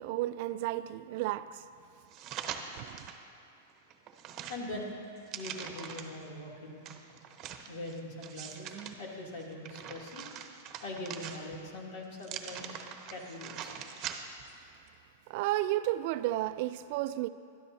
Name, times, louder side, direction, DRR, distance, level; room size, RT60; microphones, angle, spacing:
voice 1, 0.0-1.6 2.8-3.0 15.3-17.3, right 15 dB, 55° right, 0.3 m, -32 dB
sound 1, 2.1-3.2 3.7-6.2 6.9-8.9 9.4-11.7 12.2-14.5 14.9-15.0, right 8 dB, 35° right, 1.0 m, -43 dB
voice 2, 4.5-4.9 5.3-6.8 7.7-10.2 10.8-13.7, left 1 dB, 60° left, 3.0 m, -42 dB
20.5 x 12.5 x 2.8 m
hypercardioid pair, 130°, 0 cm